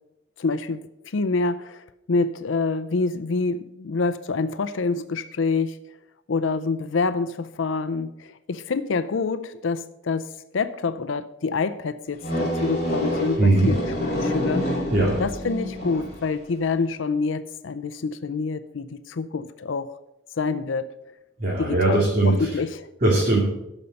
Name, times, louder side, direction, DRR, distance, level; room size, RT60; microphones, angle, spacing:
voice 1, 0.4-0.9 1.1-5.8 6.3-10.3 10.5-13.8 14.2-14.7 15.2-19.9 20.4-20.9 21.6-22.9, left 4 dB, 75° left, 12 dB, 0.5 m, -26 dB
sound 1, 12.2-16.3, equal, 35° left, 4.9 m, -27 dB
voice 2, 13.4-13.7 14.9-15.2 21.4-22.6 23.0-23.4, right 2 dB, 45° right, -4 dB, 2.4 m, -20 dB
12.5 x 5.4 x 6.4 m, 0.88 s
head